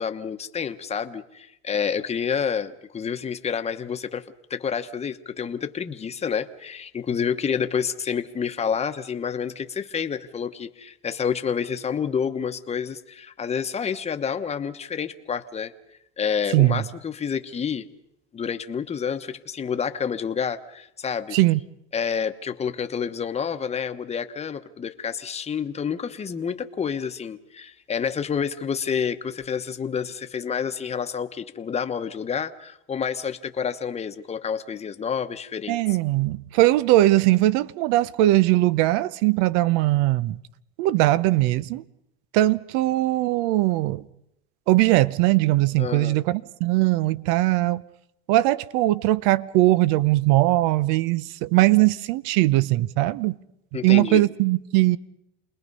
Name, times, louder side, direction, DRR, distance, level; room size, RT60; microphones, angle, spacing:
voice 1, 0.0-15.7 16.2-17.9 18.3-21.4 21.9-35.8 45.8-46.2 53.7-54.2, left 7 dB, 20° left, 1.1 m, -29 dB
voice 2, 16.5-16.8 21.3-21.6 35.7-40.4 40.8-41.8 42.3-44.1 44.7-47.8 48.3-53.4 53.8-55.0, right 17 dB, 65° right, 0.8 m, -20 dB
28.5 x 20.5 x 5.5 m
supercardioid pair, 120°, 32 cm